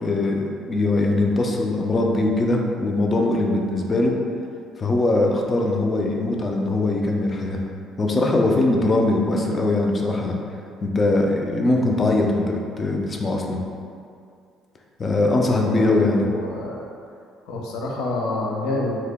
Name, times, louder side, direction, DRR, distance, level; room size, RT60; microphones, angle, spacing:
voice 1, 0.0-4.1 4.8-7.6 8.0-10.4 10.8-13.6 15.0-16.3, left 2 dB, 30° left, 1 dB, 0.4 m, -21 dB
voice 2, 15.8-16.7 17.5-19.0, left 2 dB, 85° left, -2 dB, 0.5 m, -27 dB
2.8 x 2.1 x 3.4 m, 2.3 s
cardioid pair, 110°, 0 cm